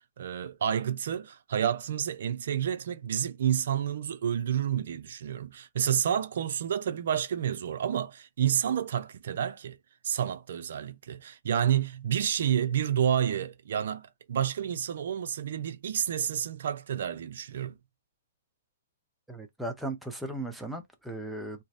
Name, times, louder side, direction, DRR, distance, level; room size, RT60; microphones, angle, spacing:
voice 1, 0.0-9.8 10.0-17.7, right 9 dB, 65° right, 0.4 m, -29 dB
voice 2, 19.3-21.6, right 1 dB, ahead, 0.5 m, -37 dB
2.6 x 2.0 x 2.4 m
hypercardioid pair, 140°, 0 cm